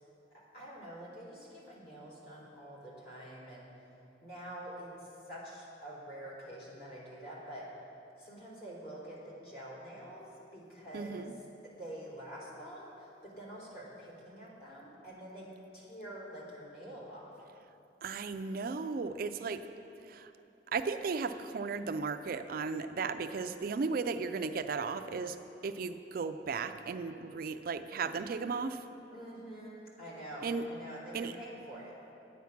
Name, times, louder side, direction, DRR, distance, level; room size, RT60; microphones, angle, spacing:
voice 1, 0.3-3.7 4.2-7.7 8.2-11.3 11.6-17.3 29.1-32.0, right 1 dB, 55° left, -6 dB, 3.0 m, -47 dB
voice 2, 10.9-11.4 18.0-19.7 20.1-20.3 20.7-28.9 30.4-30.7 31.1-31.4, right 4 dB, 50° right, 10 dB, 0.4 m, -35 dB
10.5 x 8.4 x 5.9 m, 2.8 s
head